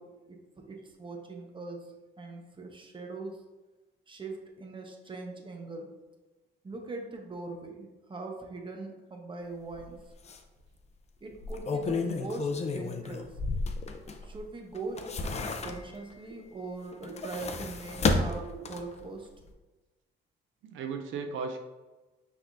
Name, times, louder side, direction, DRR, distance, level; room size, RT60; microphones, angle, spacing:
voice 1, 0.0-1.9 2.2-3.4 4.1-5.9 6.6-10.0 11.2-13.3 14.2-19.3, right 3 dB, 25° right, 2 dB, 0.9 m, -41 dB
sound 1, 9.7-9.9 10.3-10.4 11.3-14.4 14.8-16.1 16.9-19.0 19.4-19.5, left 3 dB, 35° left, 0.5 m, -32 dB
voice 2, 20.6-21.6, right 5 dB, 75° right, 5 dB, 0.5 m, -37 dB
5.8 x 3.6 x 2.6 m, 1.2 s
cardioid pair, 90°, 20 cm